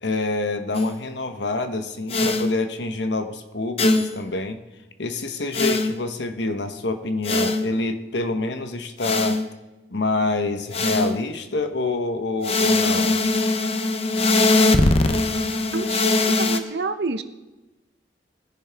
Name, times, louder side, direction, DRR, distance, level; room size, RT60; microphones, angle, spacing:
voice 1, 0.0-4.6 5.0-9.4 9.9-13.2, left 2 dB, 75° left, 7 dB, 1.0 m, -27 dB
sound 1, 0.7-1.0 2.1-2.5 3.8-4.2 5.5-5.9 7.2-7.7 9.0-9.5 10.7-11.2 12.4-16.6, left 2 dB, 35° left, 0.7 m, -21 dB
voice 2, 15.7-16.0 16.4-17.2, right 4 dB, 65° right, 10 dB, 0.8 m, -28 dB
20.5 x 10.5 x 3.5 m, 1.1 s
head